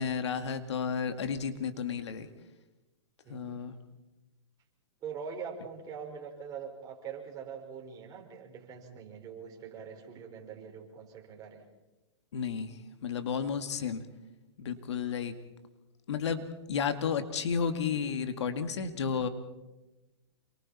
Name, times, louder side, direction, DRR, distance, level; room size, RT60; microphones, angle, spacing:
voice 1, 0.0-2.3 3.3-3.7 12.3-14.0 14.6-15.4 16.1-16.4 16.7-19.3, left 6 dB, 75° left, 8 dB, 2.1 m, -32 dB
voice 2, 3.2-3.6 5.0-11.6, right 6 dB, 25° right, 1 dB, 5.0 m, -43 dB
28.0 x 24.0 x 4.3 m, 1.1 s
hypercardioid pair, 135°, 15 cm